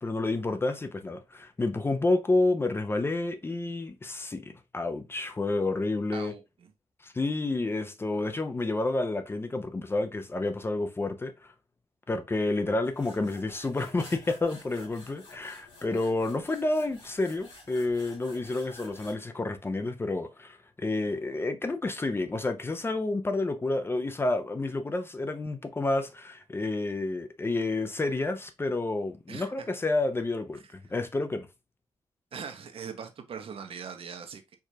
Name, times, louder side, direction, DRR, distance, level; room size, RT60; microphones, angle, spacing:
voice 1, 0.0-6.3 7.0-11.5 12.1-31.5, left 2 dB, 20° left, 0.4 m, -30 dB
voice 2, 6.1-6.7 29.3-29.7 30.6-30.7 32.3-34.6, right 6 dB, 60° right, 0.7 m, -41 dB
sound 1, 12.8-19.1, left 2 dB, 55° left, 2.4 m, -51 dB
4.6 x 2.4 x 2.6 m
wide cardioid pair, 115°, 11 cm